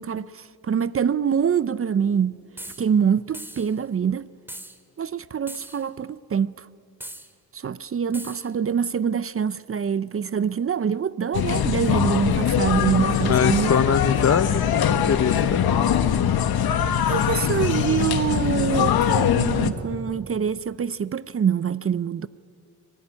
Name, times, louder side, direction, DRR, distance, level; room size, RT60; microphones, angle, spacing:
voice 1, 0.0-2.4 2.8-4.3 5.0-6.7 7.5-13.8 17.0-22.3, right 7 dB, 35° right, 0.6 m, -25 dB
sound 1, 2.6-2.9 3.3-3.7 4.5-4.8 5.5-5.8 7.0-7.3 8.1-8.5, right 1 dB, 5° right, 2.4 m, -39 dB
sound 2, 11.3-19.7, left 8 dB, 70° left, 1.5 m, -22 dB
voice 2, 13.1-15.9, left 7 dB, 40° left, 1.0 m, -23 dB
24.0 x 20.0 x 9.9 m
cardioid pair, 95°, 38 cm